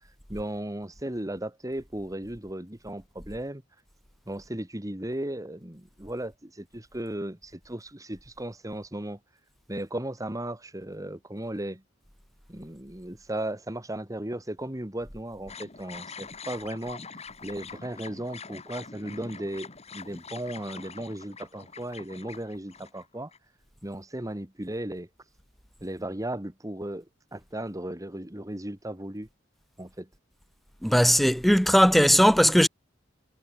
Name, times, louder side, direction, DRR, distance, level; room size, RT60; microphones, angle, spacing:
voice 1, 0.3-3.6 4.3-9.2 9.7-11.8 12.5-17.0 17.4-23.3 23.8-25.1 25.8-27.1 27.3-29.3 29.8-30.1, right 1 dB, 15° right, 1.9 m, -36 dB
sound 1, 15.5-23.4, left 5 dB, 35° left, 2.0 m, -44 dB
voice 2, 30.8-32.7, equal, ahead, 0.7 m, -19 dB
head